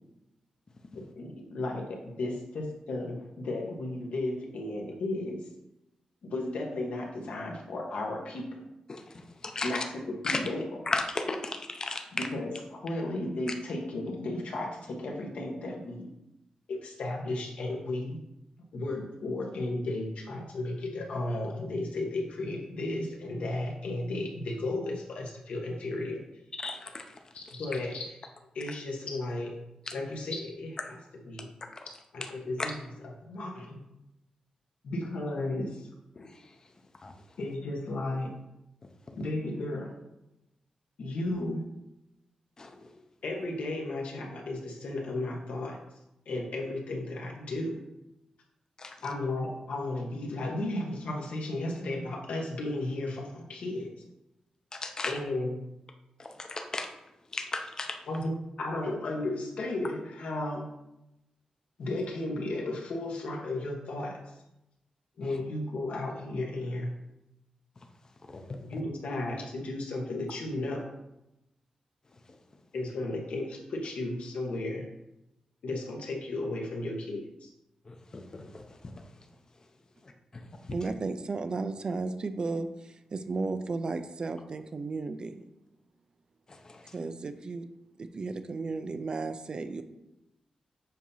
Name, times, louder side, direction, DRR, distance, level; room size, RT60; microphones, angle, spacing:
voice 1, 0.9-5.4 6.2-8.6 9.6-10.8 12.1-16.1 16.7-18.2 18.7-26.2 27.3-28.2 28.5-29.6 29.9-31.5 32.1-33.8 34.8-35.9 37.4-38.3 39.1-40.0 41.0-41.6 43.2-45.8 46.2-47.8 49.0-53.9 55.1-55.6 58.1-60.7 61.8-64.2 65.2-66.9 68.7-70.9 72.7-74.9 75.6-77.5, left 2 dB, 80° left, 0 dB, 1.3 m, -34 dB
voice 2, 9.5-9.8 10.2-10.4 10.9-12.0 26.6-27.0 36.2-36.3 37.0-37.1 42.6-42.7 48.8-49.0 54.7-55.1 56.4-56.9 57.3-58.0 68.5-68.6 77.9-78.0 78.3-78.6, left 3 dB, 30° left, 4 dB, 0.7 m, -34 dB
voice 3, 80.7-85.4 86.9-87.7 88.0-89.8, right 3 dB, 40° right, 9 dB, 0.4 m, -34 dB
7.4 x 2.9 x 5.5 m, 0.90 s
wide cardioid pair, 140°, 2 cm